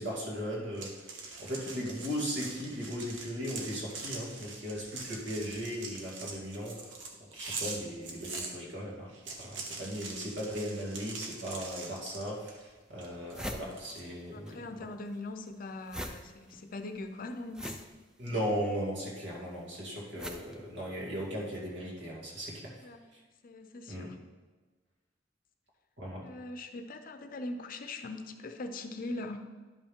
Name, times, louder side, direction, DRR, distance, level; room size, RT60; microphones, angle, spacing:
voice 1, 0.0-6.8 7.2-9.1 9.4-14.5 18.2-22.7 23.9-24.1 26.0-26.2, equal, 70° right, -3 dB, 2.3 m, -37 dB
sound 1, 0.7-8.5 9.1-12.6 13.0-14.0, right 3 dB, 85° right, 1.1 m, -43 dB
voice 2, 1.3-1.6 14.3-17.8 20.1-20.3 22.7-23.1 23.4-24.2 26.2-29.4, left 2 dB, 50° left, 7 dB, 0.6 m, -41 dB
sound 2, 12.1-12.2 12.7-12.8 13.0-14.6 14.8-21.4, equal, 5° right, 0.5 m, -44 dB
11.0 x 5.3 x 3.6 m, 1.3 s
head